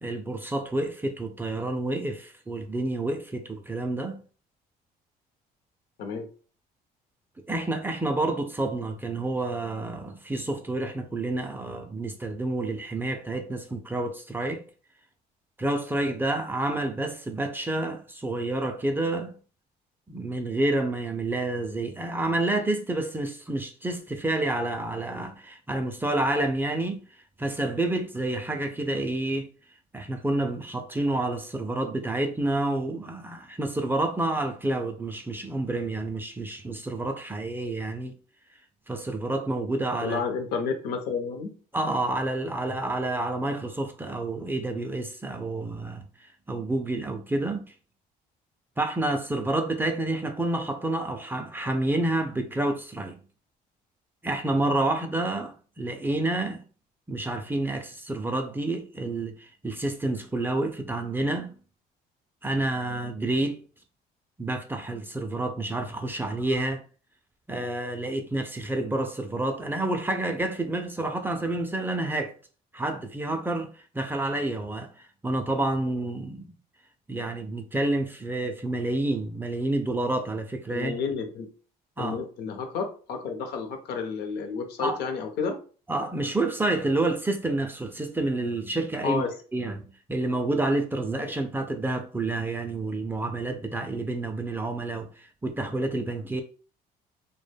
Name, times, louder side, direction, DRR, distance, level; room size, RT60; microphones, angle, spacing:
voice 1, 0.0-4.2 7.5-14.6 15.6-19.3 20.1-27.0 27.4-29.5 29.9-38.2 38.9-40.2 41.7-47.7 48.8-53.2 54.2-56.6 57.1-61.6 62.4-63.6 64.4-66.8 67.5-72.3 72.7-76.5 77.1-81.0 82.0-82.2 84.8-85.0 85.9-89.2 89.5-89.8 90.1-96.4, right 2 dB, 10° right, 0.3 m, -29 dB
voice 2, 40.0-41.5 80.7-81.5 82.0-85.6 89.0-89.3, left 5 dB, 75° left, 0.7 m, -31 dB
2.1 x 2.1 x 3.3 m
cardioid pair, 110°, 17 cm